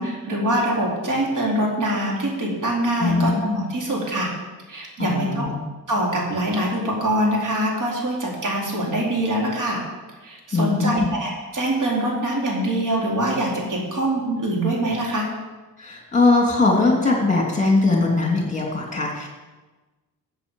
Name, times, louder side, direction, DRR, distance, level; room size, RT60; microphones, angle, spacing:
voice 1, 0.0-4.3 4.7-5.4 5.9-9.8 10.2-15.3, right 1 dB, 60° right, -2 dB, 4.1 m, -24 dB
voice 2, 3.0-3.4 5.0-5.5 10.5-11.1 15.8-19.3, left 3 dB, 20° left, 0 dB, 2.8 m, -20 dB
14.0 x 8.2 x 5.5 m, 1.2 s
cardioid pair, 120°, 35 cm